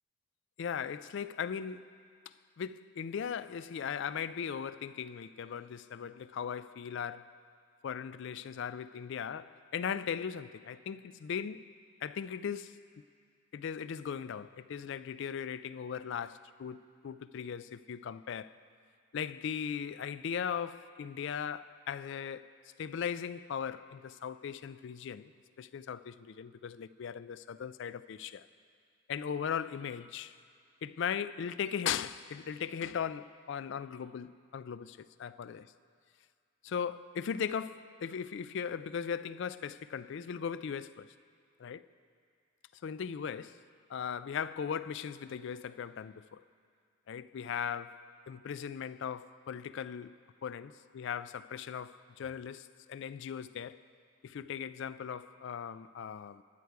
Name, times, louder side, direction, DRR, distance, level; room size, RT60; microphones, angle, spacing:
voice 1, 0.6-1.9 2.3-7.3 7.8-11.7 12.0-12.8 13.5-16.8 17.0-18.5 19.1-22.5 22.8-25.3 25.6-28.5 29.1-30.4 30.8-35.7 36.6-41.1 41.6-41.8 42.8-43.6 43.9-46.4 47.1-50.1 50.4-53.8 54.2-56.4, left 7 dB, 55° left, 0.3 m, -38 dB
22.5 x 8.0 x 4.7 m
head